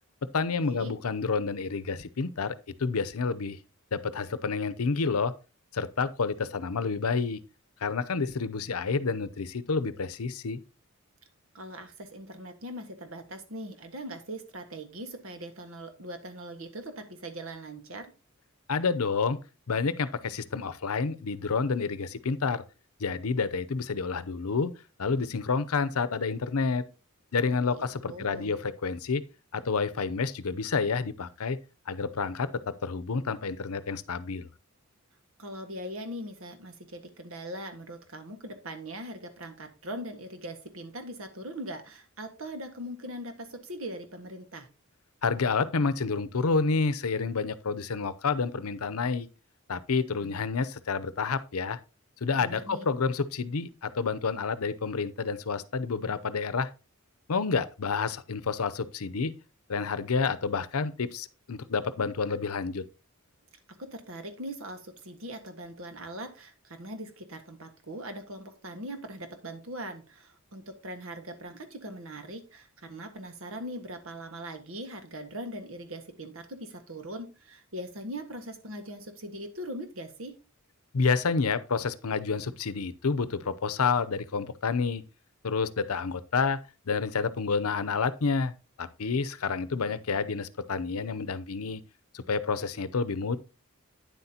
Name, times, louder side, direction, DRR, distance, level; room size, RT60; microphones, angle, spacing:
voice 1, 0.3-3.6 3.9-5.3 5.7-7.4 7.8-10.6 18.7-19.4 19.7-22.6 23.0-24.7 25.0-26.8 27.3-29.2 29.5-31.6 31.9-34.5 45.2-49.3 49.7-51.8 52.2-56.7 57.3-59.3 59.7-62.8 80.9-85.0 85.4-86.6 86.9-88.5 88.8-91.8 92.1-93.4, left 4 dB, 90° left, 0.7 m, -29 dB
voice 2, 11.5-18.1 27.8-28.5 35.4-44.7 50.2-50.4 52.4-52.8 63.8-80.3, right 1 dB, 65° right, 1.5 m, -41 dB
9.6 x 7.9 x 2.8 m
head